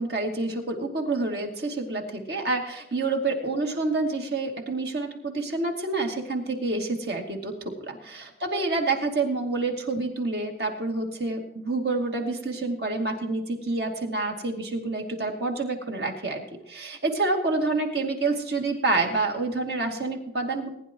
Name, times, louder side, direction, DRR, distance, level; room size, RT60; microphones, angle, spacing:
voice 1, 0.0-20.7, right 3 dB, 60° right, 2 dB, 2.5 m, -28 dB
20.0 x 10.5 x 3.0 m, 0.82 s
head